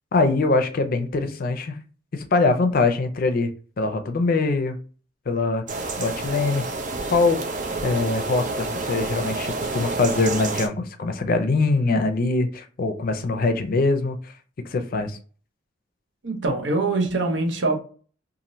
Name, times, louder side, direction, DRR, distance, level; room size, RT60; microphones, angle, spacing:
voice 1, 0.1-1.7 2.1-3.5 3.8-4.8 5.3-6.6 7.1-7.4 7.8-14.2 14.7-15.2, left 3 dB, 50° left, 0.5 m, -23 dB
sound 1, 5.7-10.7, right 3 dB, 45° right, 0.6 m, -29 dB
voice 2, 16.2-17.8, right 2 dB, 75° right, 0.8 m, -23 dB
2.7 x 2.5 x 3.0 m
head